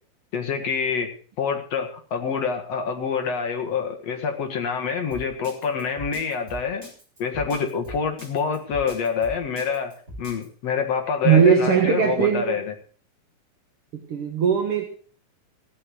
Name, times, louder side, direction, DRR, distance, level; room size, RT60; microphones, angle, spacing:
voice 1, 0.3-1.1 1.4-6.8 7.2-12.6, left 6 dB, 50° left, 2.4 m, -26 dB
Drum kit, 5.1-10.5, equal, 20° right, 8.3 m, -39 dB
voice 2, 11.2-12.6 14.1-14.9, right 7 dB, 55° right, 1.6 m, -19 dB
15.5 x 10.0 x 6.2 m
omnidirectional pair, 4.2 m